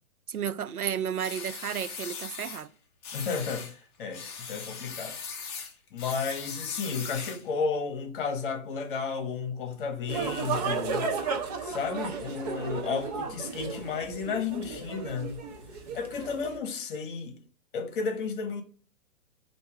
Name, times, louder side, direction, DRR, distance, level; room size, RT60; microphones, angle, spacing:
voice 1, 0.3-2.7, right 8 dB, 85° right, 0.6 m, -32 dB
sound 1, 1.2-2.6 3.0-3.7 4.1-7.5, left 5 dB, 20° left, 0.6 m, -40 dB
voice 2, 3.1-5.2 5.9-11.1 11.6-15.4 15.9-17.3 17.7-18.6, left 5 dB, 35° left, 1.2 m, -33 dB
sound 2, 10.1-16.6, right 5 dB, 30° right, 0.7 m, -34 dB
8.2 x 2.8 x 4.7 m
figure-of-eight pair, 125°, 43 cm